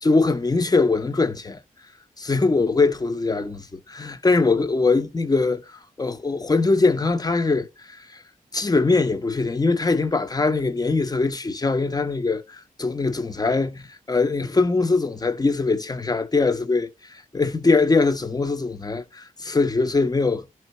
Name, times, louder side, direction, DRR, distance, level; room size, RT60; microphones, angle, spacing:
voice 1, 0.0-1.6 2.2-8.2 8.5-20.5, left 3 dB, 25° left, 0.8 m, -22 dB
12.0 x 4.5 x 3.0 m
cardioid pair, 65°, 14 cm